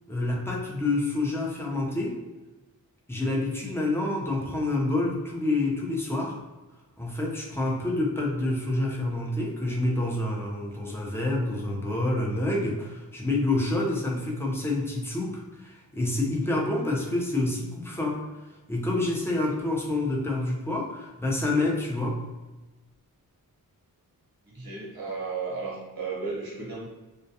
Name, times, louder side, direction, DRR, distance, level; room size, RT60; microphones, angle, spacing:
voice 1, 0.1-2.1 3.1-6.4 7.0-18.3 18.7-22.2, left 2 dB, 5° left, -3 dB, 0.5 m, -28 dB
voice 2, 24.4-26.9, right 4 dB, 65° right, -4 dB, 0.9 m, -34 dB
2.2 x 2.1 x 2.7 m, 1.1 s
wide cardioid pair, 70°, 38 cm